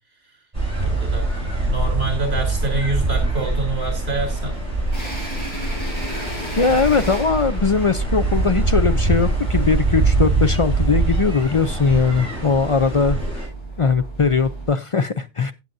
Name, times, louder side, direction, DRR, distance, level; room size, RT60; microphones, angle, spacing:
sound 1, 0.5-13.5, right 2 dB, 30° right, 7.7 m, -23 dB
voice 1, 0.8-1.2 1.7-4.6, right 3 dB, 60° right, 4 dB, 4.1 m, -26 dB
sound 2, 3.1-14.7, right 2 dB, 25° left, 4.7 m, -34 dB
voice 2, 6.6-13.2 13.8-15.5, left 5 dB, 45° left, 11 dB, 0.4 m, -20 dB
16.5 x 7.6 x 2.6 m, 0.24 s
omnidirectional pair, 1.2 m